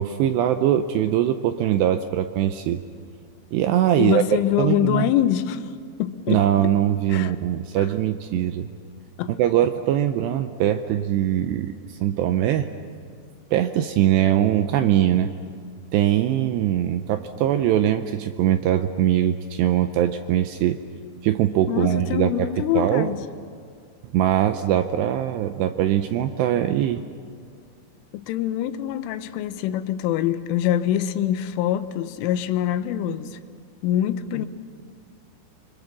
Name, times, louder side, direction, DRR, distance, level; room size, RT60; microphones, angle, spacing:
voice 1, 0.0-2.8 3.5-5.1 6.3-8.7 9.4-12.7 13.5-15.3 15.9-20.8 21.2-23.1 24.1-27.0, right 11 dB, 80° right, 2.5 m, -22 dB
voice 2, 4.0-5.7 6.0-6.5 7.1-7.3 7.8-7.9 9.2-9.3 21.7-23.3 28.1-33.4 33.8-34.5, left 11 dB, 85° left, 3.4 m, -24 dB
26.5 x 25.0 x 7.2 m
omnidirectional pair, 5.6 m